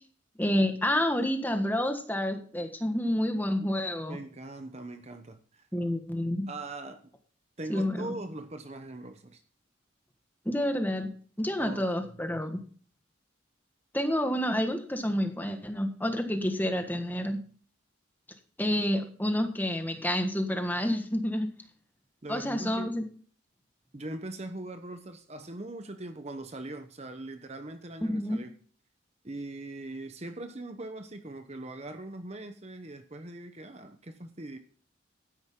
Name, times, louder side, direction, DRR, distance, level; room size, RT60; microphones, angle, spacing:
voice 1, 0.4-4.2 5.7-6.5 7.7-8.1 10.4-11.1 11.4-12.6 13.9-17.4 18.6-21.5 22.3-23.0 28.0-28.4, left 1 dB, 10° left, 1.6 m, -29 dB
voice 2, 4.1-5.7 6.5-7.1 7.6-9.4 11.6-12.4 22.2-22.9 23.9-28.5 29.2-34.6, right 2 dB, 35° right, 1.0 m, -41 dB
12.5 x 10.5 x 3.8 m
head